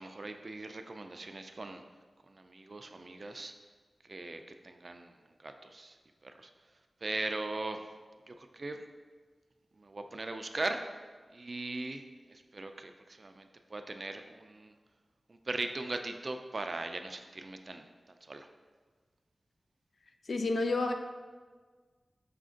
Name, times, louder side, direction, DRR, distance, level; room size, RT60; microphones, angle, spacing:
voice 1, 0.0-1.8 2.3-3.5 4.1-5.1 5.4-6.0 6.2-6.5 7.0-7.9 8.3-8.8 9.8-11.0 11.3-12.0 12.3-14.7 15.3-18.5, right 2 dB, 50° right, 6 dB, 0.3 m, -39 dB
voice 2, 20.3-20.9, left 3 dB, 80° left, 5 dB, 0.3 m, -29 dB
5.0 x 2.5 x 3.7 m, 1.5 s
wide cardioid pair, 60°, 0 cm